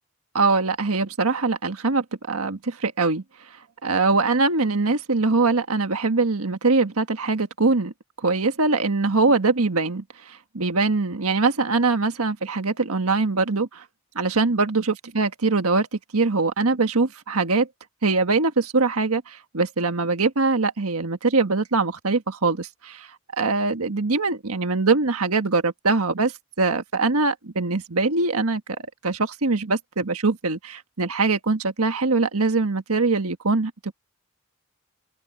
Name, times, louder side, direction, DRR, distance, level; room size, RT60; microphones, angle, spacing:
voice 1, 0.3-3.2 3.8-7.9 8.2-13.8 14.1-17.7 18.0-23.1 23.4-28.6 29.0-33.9, right 3 dB, 85° right, 1.5 m, -22 dB
head